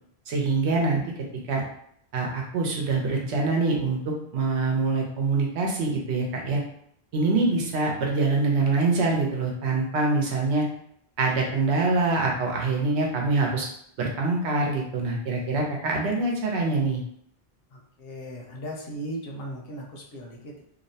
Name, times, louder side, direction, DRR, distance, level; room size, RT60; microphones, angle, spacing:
voice 1, 0.3-1.0 1.5-1.6 2.1-6.6 7.1-10.7 11.2-13.7 14.0-17.0, right 3 dB, 90° right, 0 dB, 0.9 m, -24 dB
voice 2, 17.7-20.6, right 1 dB, 65° left, -1 dB, 0.8 m, -37 dB
2.7 x 2.0 x 2.7 m, 0.69 s
omnidirectional pair, 1.1 m